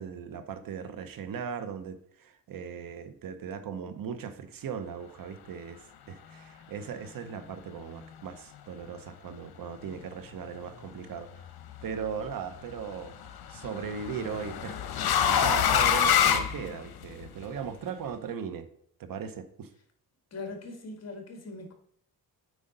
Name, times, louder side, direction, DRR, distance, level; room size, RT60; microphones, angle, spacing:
voice 1, 0.0-11.3 11.8-13.2 13.5-18.7 19.0-19.7, right 7 dB, 65° right, 10 dB, 0.8 m, -38 dB
sound 1, 11.3-11.8 13.3-17.2, left 9 dB, 80° left, 0.9 m, -25 dB
voice 2, 20.3-21.7, left 3 dB, 45° left, 3 dB, 1.7 m, -40 dB
8.1 x 5.0 x 3.8 m, 0.68 s
cardioid pair, 115°, 37 cm